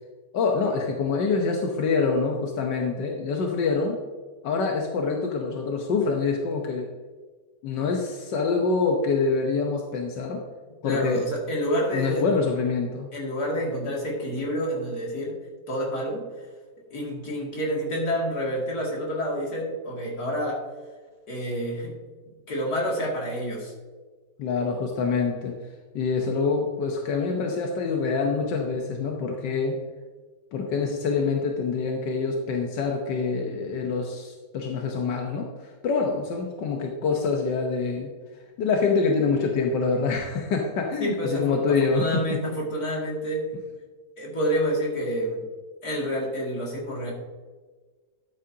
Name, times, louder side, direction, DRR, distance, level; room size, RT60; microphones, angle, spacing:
voice 1, 0.3-4.0 4.4-6.9 7.6-10.4 10.8-11.2 11.9-13.1 24.4-25.6 25.9-29.8 30.5-38.1 38.6-42.4, left 4 dB, 90° left, 1 dB, 1.6 m, -25 dB
voice 2, 10.8-12.2 13.1-15.4 15.7-16.5 16.9-20.6 21.3-22.0 22.5-23.7 41.0-43.5 44.2-45.4 45.8-47.1, equal, 60° left, -3 dB, 3.0 m, -28 dB
12.5 x 8.9 x 2.8 m, 1.4 s
omnidirectional pair, 1.8 m